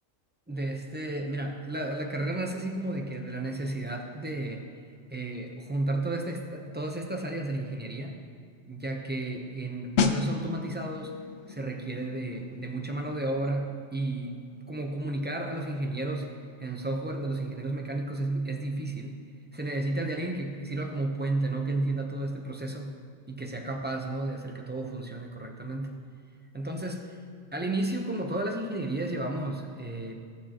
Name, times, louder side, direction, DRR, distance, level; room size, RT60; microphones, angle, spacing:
voice 1, 0.5-4.7 5.1-8.2 8.7-11.2 11.5-19.2 19.5-22.9 23.3-26.0 26.5-27.2 27.5-30.1, right 2 dB, 10° right, 2 dB, 0.6 m, -32 dB
sound 1, 10.0-20.5 20.7-21.0, left 5 dB, 60° left, 0.8 m, -36 dB
16.5 x 7.2 x 3.0 m, 2.2 s
omnidirectional pair, 1.4 m